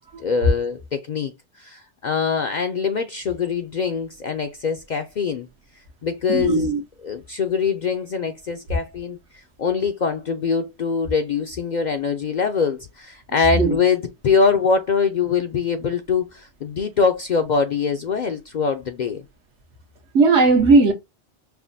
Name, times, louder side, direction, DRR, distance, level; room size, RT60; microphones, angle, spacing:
voice 1, 0.2-5.5 6.0-6.7 7.0-19.2, left 5 dB, 60° left, 0.5 m, -23 dB
voice 2, 6.3-6.8 13.5-13.8 20.1-20.9, right 3 dB, 80° right, 1.2 m, -16 dB
5.6 x 2.1 x 2.5 m
omnidirectional pair, 1.2 m